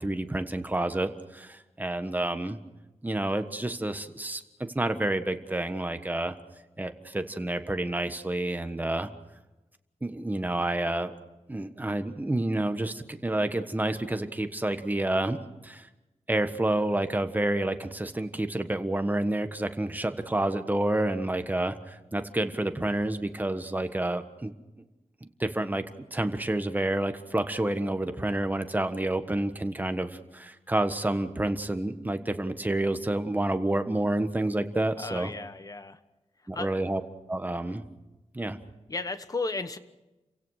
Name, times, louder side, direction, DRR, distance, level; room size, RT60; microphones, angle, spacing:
voice 1, 0.0-2.6 3.0-4.4 4.7-6.3 6.8-9.1 10.0-11.1 11.5-15.9 16.3-24.5 25.2-25.8 26.1-35.3 36.5-37.0 37.3-37.8 38.3-38.6, right 1 dB, 15° right, 8 dB, 1.4 m, -29 dB
voice 2, 35.0-36.0 36.5-36.8 38.9-39.8, left 3 dB, 30° left, 11 dB, 1.2 m, -34 dB
29.5 x 16.5 x 6.5 m, 1.0 s
wide cardioid pair, 135°, 11 cm